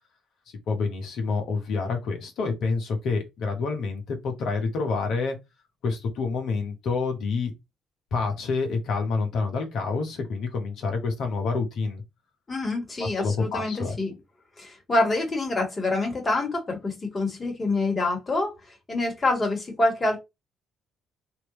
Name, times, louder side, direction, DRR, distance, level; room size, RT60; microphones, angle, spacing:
voice 1, 0.7-5.4 5.8-7.5 8.1-12.0 13.0-14.0, left 4 dB, 65° left, 1.2 m, -28 dB
voice 2, 12.5-14.1 14.6-18.5 18.9-20.2, left 2 dB, 30° left, 2.0 m, -26 dB
3.0 x 2.8 x 3.1 m
hypercardioid pair, 55°, 0 cm